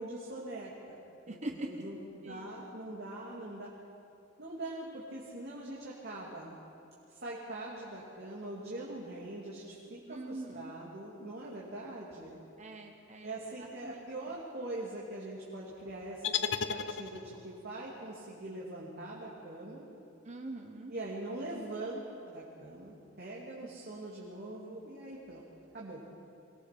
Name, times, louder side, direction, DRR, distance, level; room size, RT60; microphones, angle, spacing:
voice 1, 0.0-2.0 2.3-3.7 4.4-6.6 7.1-12.4 13.2-19.8 20.9-25.4 25.7-26.0, right 2 dB, 55° right, -5 dB, 2.7 m, -42 dB
voice 2, 1.3-1.7 2.2-2.6 10.1-10.7 12.6-14.1 20.2-20.9, right 2 dB, 40° right, 4 dB, 1.0 m, -43 dB
sound 1, 16.2-17.5, left 7 dB, 65° left, 0.8 m, -34 dB
23.5 x 18.0 x 6.0 m, 2.5 s
head